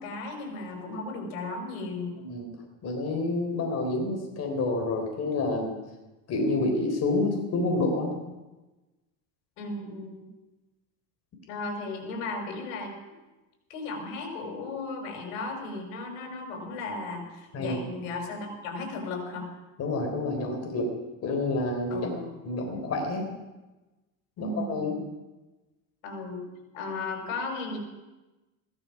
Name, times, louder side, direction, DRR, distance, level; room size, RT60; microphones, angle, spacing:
voice 1, 0.0-2.2 9.6-10.3 11.5-13.0 13.7-19.5 21.9-22.3 24.4-24.9 26.0-26.5 26.7-27.8, left 3 dB, 75° left, 2 dB, 6.2 m, -35 dB
voice 2, 2.2-2.5 2.8-5.8 6.3-8.1 17.5-17.8 19.8-20.9 21.2-22.1 22.4-23.3 24.4-25.0, left 2 dB, 40° left, 2 dB, 3.9 m, -28 dB
16.5 x 14.0 x 6.0 m, 1.1 s
supercardioid pair, 120°, 39 cm